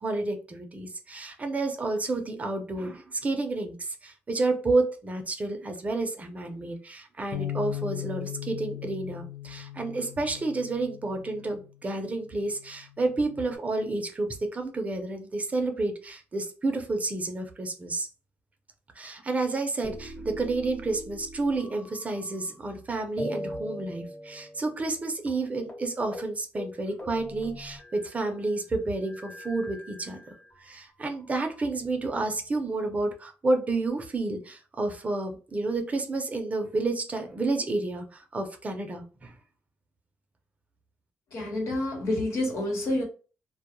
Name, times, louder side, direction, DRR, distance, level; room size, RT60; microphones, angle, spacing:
voice 1, 0.0-18.1 19.0-39.3, right 2 dB, 30° right, 0.6 m, -30 dB
Bass guitar, 7.3-11.7 12.4-13.6, left 12 dB, 50° left, 0.5 m, -38 dB
sound 1, 19.8-22.8 23.2-25.0 25.3-25.4 25.7-25.9 26.1-26.3 26.6-28.3 29.0-30.6 31.3-32.2, equal, 30° left, 1.2 m, -41 dB
voice 2, 41.3-43.0, left 1 dB, 65° left, 1.2 m, -28 dB
2.2 x 2.0 x 2.9 m
cardioid pair, 90°, 5 cm